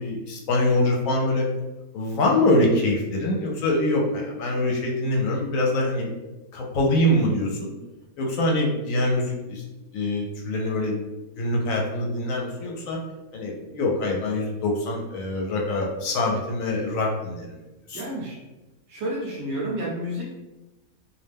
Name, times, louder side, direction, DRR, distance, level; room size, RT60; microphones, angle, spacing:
voice 1, 0.0-1.5 1.9-6.1 6.5-7.7 8.2-9.6 9.9-11.1 11.4-13.0 13.3-17.5 17.9-18.0, left 1 dB, 70° left, -1 dB, 0.9 m, -24 dB
voice 2, 17.9-18.4 18.9-20.2, right 1 dB, 60° right, -3 dB, 0.8 m, -30 dB
2.5 x 2.1 x 3.3 m, 1.0 s
omnidirectional pair, 1.5 m